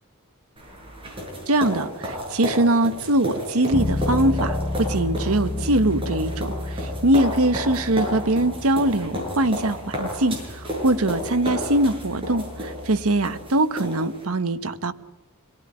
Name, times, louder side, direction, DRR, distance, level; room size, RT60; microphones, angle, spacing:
sound 1, 0.6-14.3, equal, 25° right, 7.9 m, -32 dB
voice 1, 1.5-14.9, right 1 dB, 70° right, 11 dB, 1.3 m, -22 dB
Bass guitar, 3.7-13.5, left 1 dB, 10° left, 1.1 m, -32 dB
26.5 x 18.0 x 9.9 m, 0.94 s
head